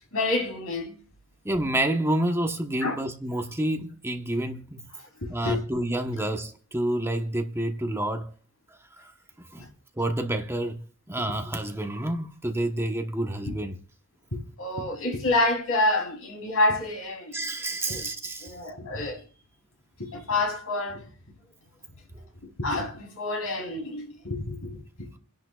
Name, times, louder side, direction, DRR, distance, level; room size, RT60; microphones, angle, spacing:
voice 1, 0.1-1.0 2.8-3.0 5.2-5.6 9.6-9.7 11.2-11.4 12.6-12.7 14.3-17.3 17.9-18.1 18.4-19.2 20.0-21.0 22.4-25.1, left 2 dB, 75° left, 3.6 m, -28 dB
voice 2, 1.4-4.9 5.3-8.3 9.0-9.1 9.5-9.6 9.9-13.8 17.3-18.5, right 1 dB, 10° right, 1.1 m, -29 dB
29.0 x 10.5 x 2.4 m
head